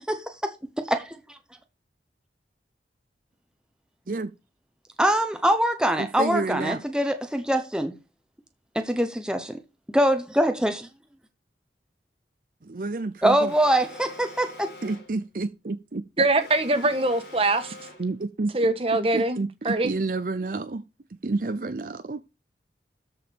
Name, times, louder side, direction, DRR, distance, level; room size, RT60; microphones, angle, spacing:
voice 1, 0.1-0.5 5.0-8.0 8.7-9.6 9.9-10.9 13.2-14.7, right 1 dB, 5° right, 0.9 m, -23 dB
voice 2, 6.0-6.8 12.7-13.5 14.8-16.0 18.0-18.5 19.1-20.8 21.2-22.2, right 3 dB, 50° right, 0.6 m, -29 dB
Alarm, 13.5-15.2 16.4-18.2, left 2 dB, 70° left, 3.6 m, -45 dB
voice 3, 16.2-17.7 18.5-19.4 19.6-19.9, right 2 dB, 30° right, 1.4 m, -23 dB
13.0 x 4.9 x 5.2 m
head